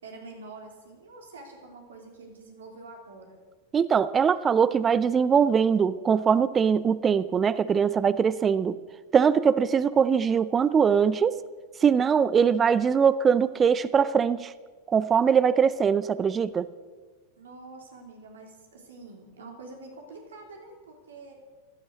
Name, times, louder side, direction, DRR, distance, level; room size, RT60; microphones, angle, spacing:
voice 1, 0.0-3.4 17.4-21.3, right 3 dB, 65° right, 2 dB, 3.4 m, -46 dB
voice 2, 3.7-8.8 9.1-11.3 11.8-14.5 14.9-16.7, right 7 dB, 20° right, 15 dB, 0.6 m, -22 dB
16.5 x 12.0 x 6.4 m, 1.3 s
figure-of-eight pair, 90°, 0 cm